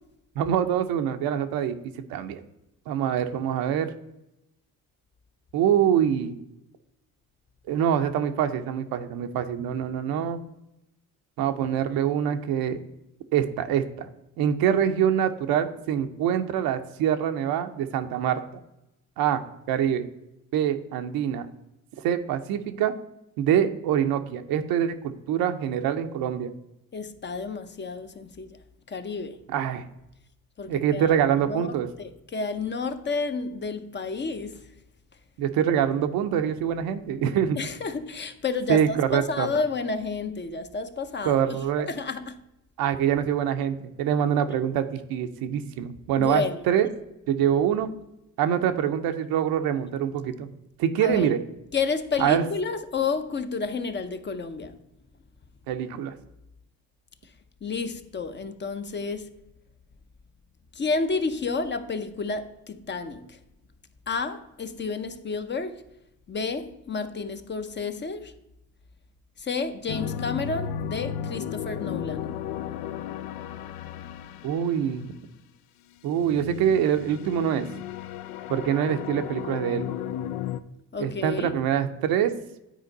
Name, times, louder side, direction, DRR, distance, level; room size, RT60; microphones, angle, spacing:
voice 1, 0.4-1.8 2.1-2.4 2.9-3.9 5.5-6.3 7.7-10.4 11.4-12.8 13.3-14.1 14.4-18.4 19.2-19.4 19.7-20.1 20.5-21.5 22.0-22.9 23.4-26.5 29.5-29.8 30.7-31.9 35.4-37.6 38.7-39.5 41.2-41.9 42.8-46.9 47.3-47.9 48.4-50.5 50.8-51.4 52.2-52.5 55.7-56.1 74.4-75.1 76.0-77.7 78.5-79.9 81.0-82.3, right 9 dB, 80° right, 0.7 m, -25 dB
voice 2, 26.9-28.6 28.9-29.4 30.6-31.2 31.5-31.7 32.0-34.6 37.6-41.4 41.8-42.4 46.2-46.6 51.0-51.3 51.7-54.8 57.6-59.4 60.8-63.3 64.1-65.8 66.3-68.3 69.4-72.3 80.9-81.5, left 4 dB, 30° left, 0.7 m, -30 dB
sound 1, 69.9-75.2 76.2-80.6, left 10 dB, 85° left, 0.5 m, -34 dB
9.3 x 4.4 x 3.9 m
cardioid pair, 80°, 35 cm